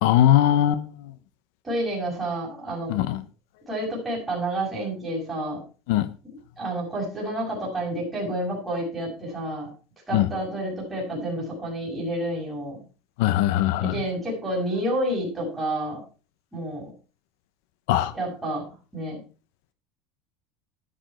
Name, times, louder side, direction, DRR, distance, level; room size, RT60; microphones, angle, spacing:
voice 1, 0.0-1.1 2.9-3.2 5.9-6.1 10.1-10.3 13.2-14.0 17.9-18.1, left 12 dB, 60° left, 1.0 m, -21 dB
voice 2, 1.6-2.9 3.7-5.6 6.2-9.7 10.1-12.8 13.8-16.0 16.5-16.9 18.1-18.6 18.9-19.2, right 1 dB, 5° right, 6.5 m, -29 dB
11.5 x 10.5 x 4.5 m
cardioid pair, 175°, 0 cm